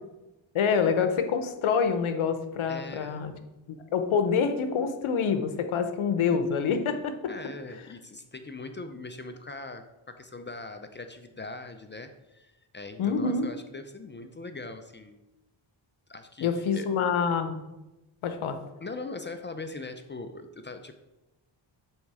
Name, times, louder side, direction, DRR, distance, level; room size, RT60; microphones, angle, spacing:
voice 1, 0.5-3.3 3.9-7.1 13.0-13.5 16.4-17.6 18.2-18.6, left 6 dB, 70° left, 8 dB, 0.8 m, -26 dB
voice 2, 2.7-3.3 7.3-15.2 16.1-16.9 18.8-20.9, left 3 dB, 25° left, 7 dB, 0.4 m, -41 dB
7.1 x 3.6 x 4.8 m, 1.0 s
wide cardioid pair, 115°, 50 cm